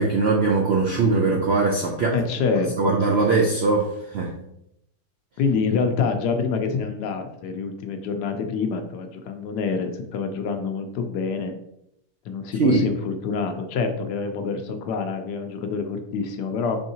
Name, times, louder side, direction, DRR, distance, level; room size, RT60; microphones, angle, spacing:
voice 1, 0.0-2.2 2.8-4.4 12.6-12.8, right 3 dB, 75° right, -1 dB, 0.6 m, -21 dB
voice 2, 2.1-2.9 5.4-11.5 12.2-16.8, left 5 dB, 85° left, 6 dB, 1.2 m, -26 dB
4.6 x 3.5 x 2.7 m, 0.79 s
omnidirectional pair, 1.7 m